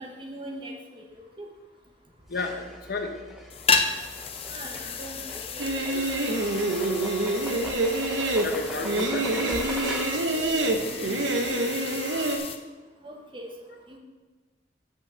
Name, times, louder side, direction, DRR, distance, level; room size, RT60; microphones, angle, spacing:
voice 1, 0.0-1.5 4.5-6.7 13.0-14.0, right 1 dB, 25° right, 1 dB, 1.1 m, -42 dB
voice 2, 2.3-3.1 8.4-11.7, left 3 dB, 55° left, 5 dB, 0.9 m, -34 dB
sound 1, 2.3-10.4, equal, ahead, 0.7 m, -41 dB
sound 2, 3.5-12.6, left 5 dB, 30° left, 0.5 m, -33 dB
sound 3, 5.6-12.4, right 2 dB, 80° right, 0.8 m, -27 dB
5.9 x 5.7 x 6.2 m, 1.3 s
head